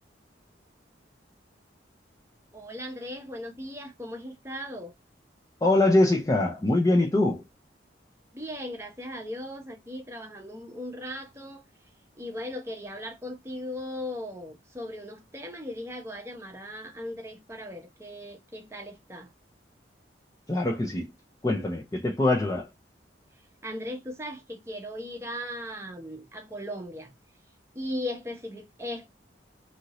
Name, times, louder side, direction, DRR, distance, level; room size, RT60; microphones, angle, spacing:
voice 1, 2.5-4.9 8.3-11.6 12.2-19.3 23.6-27.1 27.7-29.1, left 1 dB, 15° right, 0.7 m, -38 dB
voice 2, 5.6-7.4 20.5-21.1 21.4-22.7, left 2 dB, 20° left, 0.5 m, -23 dB
2.8 x 2.6 x 3.0 m
head